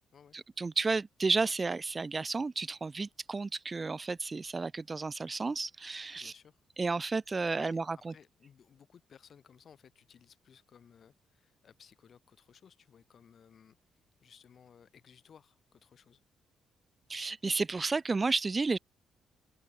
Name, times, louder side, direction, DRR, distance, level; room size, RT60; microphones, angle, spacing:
voice 1, 0.3-6.3 6.8-8.1 17.1-18.8, right 3 dB, 25° right, 0.4 m, -32 dB
voice 2, 6.1-6.6 7.5-7.8 8.1-16.2, left 7 dB, 55° left, 1.5 m, -59 dB
open air
cardioid pair, 90°, 0 cm